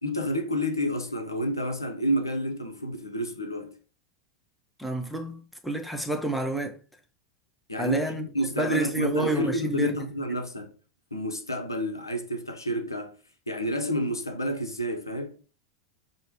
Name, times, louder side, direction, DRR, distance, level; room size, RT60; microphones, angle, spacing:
voice 1, 0.0-3.8 7.7-10.7 11.1-13.2 13.5-15.4, equal, 85° left, 0.6 m, -29 dB
voice 2, 4.8-6.8 7.8-8.3 8.6-10.0, right 2 dB, ahead, 0.7 m, -29 dB
5.2 x 2.1 x 3.0 m
figure-of-eight pair, 85°, 2 cm